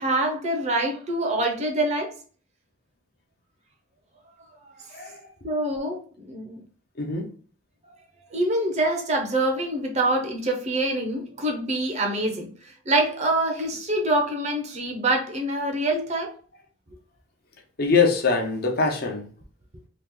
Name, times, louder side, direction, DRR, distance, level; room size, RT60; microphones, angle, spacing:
voice 1, 0.0-2.1 5.4-6.6 8.3-12.5 12.9-16.3, right 1 dB, 35° right, 0.7 m, -25 dB
voice 2, 4.9-5.3 7.0-7.3 17.8-19.3, left 4 dB, 50° left, 0.6 m, -23 dB
3.0 x 2.3 x 3.6 m
head